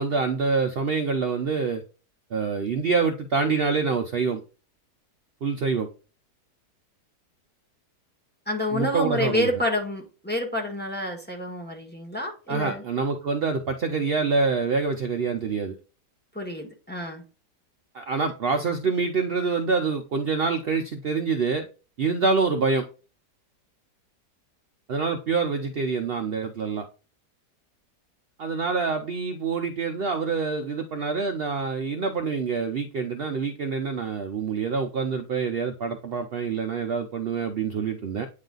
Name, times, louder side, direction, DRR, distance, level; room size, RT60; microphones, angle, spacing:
voice 1, 0.0-1.8 2.3-4.4 5.4-5.9 8.7-9.5 12.5-15.8 17.9-21.7 22.0-22.9 24.9-26.9 28.4-38.3, right 4 dB, 70° right, 5 dB, 0.5 m, -26 dB
voice 2, 8.5-12.8 16.3-17.2, left 1 dB, 5° left, 2 dB, 1.2 m, -28 dB
9.1 x 3.2 x 3.8 m, 0.34 s
omnidirectional pair, 1.7 m